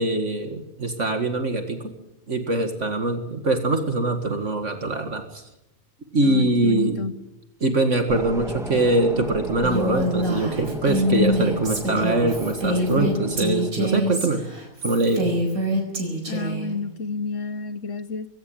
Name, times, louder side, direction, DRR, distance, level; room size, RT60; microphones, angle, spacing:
voice 1, 0.0-1.8 2.3-5.4 6.1-7.0 7.6-14.4 14.8-15.3, right 2 dB, 60° right, 6 dB, 2.3 m, -23 dB
voice 2, 6.2-7.1 12.7-13.1 16.3-18.3, left 4 dB, 65° left, 13 dB, 1.4 m, -30 dB
sound 1, 8.1-13.7, equal, ahead, 1.7 m, -36 dB
Female speech woman speaking, 9.6-16.7, equal, 85° right, 5.2 m, -25 dB
21.5 x 17.0 x 8.8 m, 0.92 s
omnidirectional pair, 1.5 m